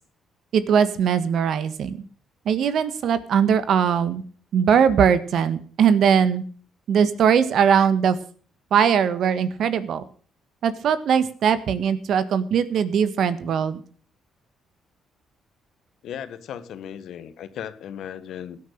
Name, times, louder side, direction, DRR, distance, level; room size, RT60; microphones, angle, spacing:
voice 1, 0.5-2.0 2.4-4.2 4.5-6.4 6.9-8.2 8.7-10.0 10.6-13.8, right 7 dB, 70° right, 13 dB, 1.6 m, -20 dB
voice 2, 16.0-18.6, left 9 dB, 75° left, 12 dB, 1.5 m, -36 dB
17.0 x 9.4 x 6.6 m, 0.44 s
supercardioid pair, 70°, 0 cm